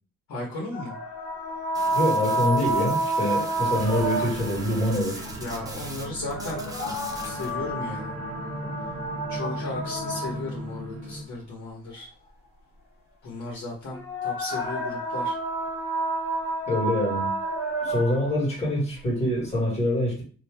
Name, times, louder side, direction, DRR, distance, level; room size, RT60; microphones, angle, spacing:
voice 1, 0.3-1.0 5.4-6.6 7.2-8.1 9.3-12.1 13.2-15.4, left 2 dB, 70° left, -3 dB, 1.3 m, -35 dB
sound 1, 0.7-4.7 6.2-10.7 13.9-18.4, right 2 dB, 45° left, 1.3 m, -29 dB
sound 2, 1.7-6.1 6.3-7.5, right 1 dB, 10° right, 0.8 m, -41 dB
voice 2, 1.9-5.2 16.7-17.3 17.8-20.2, left 1 dB, 20° left, -4 dB, 1.8 m, -25 dB
sound 3, 3.7-11.2, right 1 dB, 50° right, 1.0 m, -37 dB
2.8 x 2.7 x 3.5 m, 0.40 s
cardioid pair, 90°, 30 cm